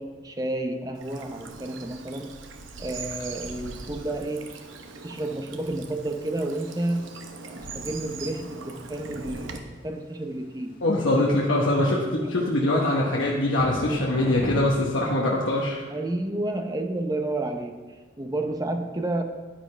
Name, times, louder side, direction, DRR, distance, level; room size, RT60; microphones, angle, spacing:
voice 1, 0.0-2.3 2.8-4.6 5.0-7.1 7.5-10.8 11.8-12.5 15.9-19.2, right 1 dB, 20° right, 5 dB, 0.7 m, -31 dB
Bird vocalization bird call bird song / Stream, 1.0-9.6, right 4 dB, 85° right, 0.9 m, -41 dB
sound 1, 4.8-14.6, equal, 50° left, 2.0 m, -42 dB
voice 2, 10.8-15.9, left 1 dB, 85° left, -2 dB, 1.1 m, -23 dB
10.0 x 9.5 x 3.3 m, 1.3 s
head